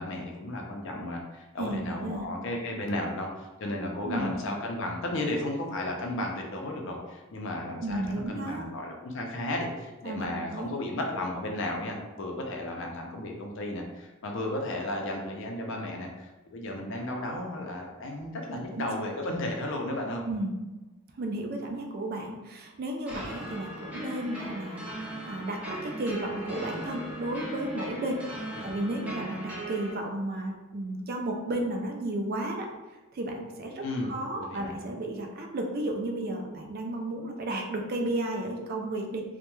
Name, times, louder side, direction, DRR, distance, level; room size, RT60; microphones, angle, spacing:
voice 1, 0.0-20.2 28.5-28.7 33.8-34.7, left 1 dB, 60° left, 1 dB, 0.5 m, -34 dB
voice 2, 1.6-2.3 4.0-4.3 7.8-8.7 10.0-10.3 10.5-10.7 18.7-18.9 20.2-20.5 21.1-28.2 28.6-32.7 33.1-39.2, right 1 dB, 45° right, 2 dB, 0.3 m, -33 dB
sound 1, 23.1-29.9, right 1 dB, 5° right, 0.7 m, -38 dB
2.2 x 2.1 x 3.0 m, 1.1 s
head